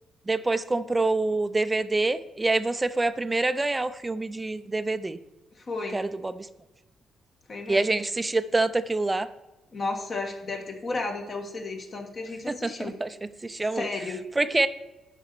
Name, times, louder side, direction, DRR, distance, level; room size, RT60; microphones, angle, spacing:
voice 1, 0.3-5.2 5.9-6.5 7.7-9.3 12.5-13.1 13.4-13.9 14.4-14.7, right 2 dB, 15° right, 13 dB, 0.5 m, -26 dB
voice 2, 5.5-6.0 7.5-7.8 9.7-12.9 13.7-14.2, left 3 dB, 45° left, 2 dB, 1.6 m, -33 dB
11.0 x 4.2 x 6.8 m, 1.1 s
cardioid pair, 90°, 0 cm